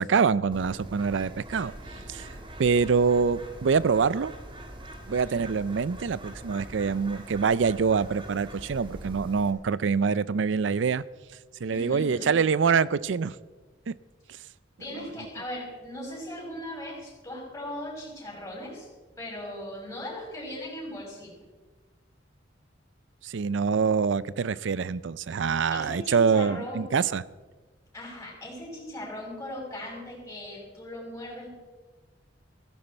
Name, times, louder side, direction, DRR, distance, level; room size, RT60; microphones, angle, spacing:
voice 1, 0.0-1.7 2.1-2.3 2.6-4.3 5.1-11.0 11.6-13.4 13.9-14.0 14.9-15.1 23.2-27.2, right 5 dB, 80° right, 19 dB, 0.5 m, -25 dB
Bird, 0.5-9.5, right 1 dB, 30° right, 1.6 m, -43 dB
voice 2, 5.1-5.4 11.7-12.3 14.8-18.9 19.2-21.3 25.7-26.8 27.9-31.5, left 1 dB, 15° left, -3 dB, 5.9 m, -38 dB
15.5 x 15.0 x 4.5 m, 1.3 s
head